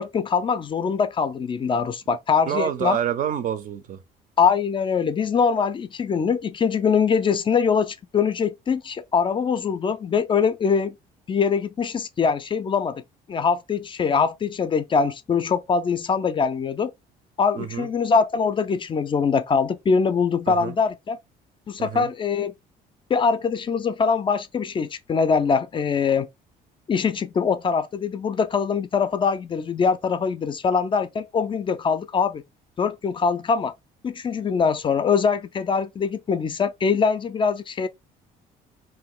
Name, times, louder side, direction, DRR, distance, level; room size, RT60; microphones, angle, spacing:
voice 1, 0.0-3.0 4.4-10.9 11.3-13.0 13.3-16.9 17.4-21.2 21.7-22.5 23.1-26.3 26.9-32.4 32.8-33.7 34.0-37.9, left 6 dB, 30° left, 0.3 m, -23 dB
voice 2, 2.5-4.0 17.6-17.9 20.5-20.7 21.8-22.1, right 9 dB, 55° right, 0.5 m, -27 dB
2.6 x 2.3 x 3.6 m
cardioid pair, 110°, 17 cm